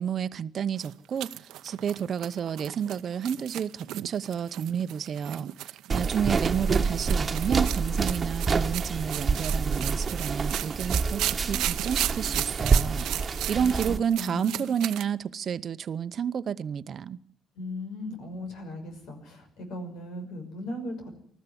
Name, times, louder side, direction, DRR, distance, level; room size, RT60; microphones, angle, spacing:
voice 1, 0.0-1.3 1.6-13.1 13.5-17.2, right 8 dB, 55° right, 0.8 m, -30 dB
sound 1, 0.8-15.0, right 14 dB, 90° right, 0.7 m, -35 dB
sound 2, 5.9-14.0, right 4 dB, 35° right, 1.4 m, -27 dB
voice 2, 13.4-14.6 17.5-21.1, left 1 dB, 85° left, 5.9 m, -38 dB
20.0 x 14.0 x 9.9 m
cardioid pair, 90°, 0 cm